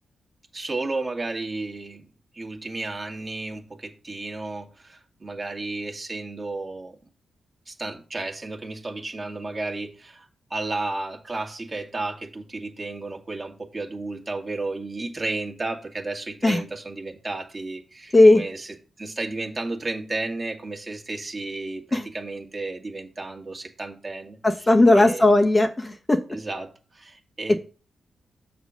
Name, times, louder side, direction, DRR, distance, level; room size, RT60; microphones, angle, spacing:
voice 1, 0.5-2.1 2.3-7.0 7.7-25.4 26.3-27.6, right 2 dB, 35° right, 1.7 m, -33 dB
voice 2, 24.4-26.2, left 2 dB, 25° left, 1.0 m, -16 dB
6.8 x 4.2 x 6.2 m
cardioid pair, 80°, 0 cm